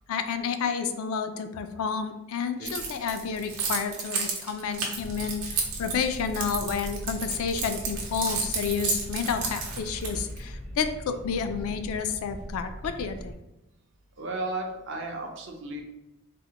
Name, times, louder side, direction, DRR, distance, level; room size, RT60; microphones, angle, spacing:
voice 1, 0.1-13.3, left 6 dB, 80° left, 8 dB, 0.3 m, -30 dB
Keys jangling, 2.7-10.4, right 5 dB, 85° right, 0.7 m, -32 dB
sound 1, 5.0-13.3, equal, ahead, 0.4 m, -40 dB
voice 2, 14.2-15.8, right 2 dB, 55° right, 2 dB, 0.5 m, -34 dB
3.6 x 2.0 x 2.8 m, 0.96 s
head